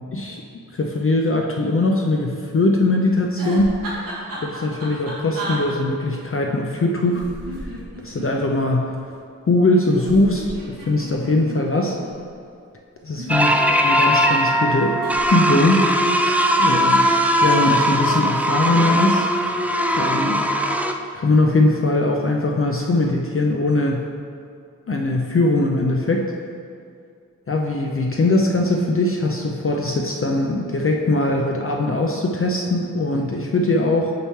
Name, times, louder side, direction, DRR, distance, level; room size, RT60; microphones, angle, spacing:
voice 1, 0.1-0.4 0.7-3.7 4.4-7.2 7.6-7.7 8.0-9.0 9.5-12.0 13.0-13.5 13.8-15.0 15.3-15.8 16.6-19.3 19.9-20.5 21.1-24.1 24.9-26.3 27.5-34.1, left 2 dB, 40° left, 1 dB, 0.6 m, -21 dB
sound 1, 3.3-5.6 7.0-8.6 9.8-12.1 13.0-14.0 15.0-15.2 15.5-15.9, right 1 dB, 90° right, 1.5 m, -33 dB
sound 2, 13.3-20.9, equal, 5° right, 0.4 m, -19 dB
6.6 x 3.1 x 5.6 m, 2.4 s
cardioid pair, 45°, 32 cm